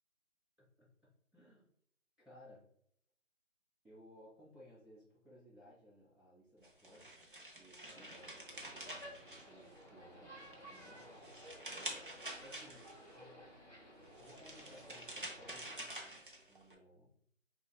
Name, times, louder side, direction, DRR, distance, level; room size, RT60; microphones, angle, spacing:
voice 1, 0.6-1.7 2.2-2.7 3.8-7.2 7.6-11.1 12.4-13.6 14.2-17.1, equal, 5° right, -27 dB, 1.4 m, -61 dB
sound 1, 6.6-10.0 10.4-13.1 14.0-16.7, right 1 dB, 45° right, 0.5 m, -48 dB
sound 2, 7.8-15.8, equal, 25° left, 1.5 m, -56 dB
4.4 x 3.1 x 2.2 m, 0.68 s
figure-of-eight pair, 180°, 38 cm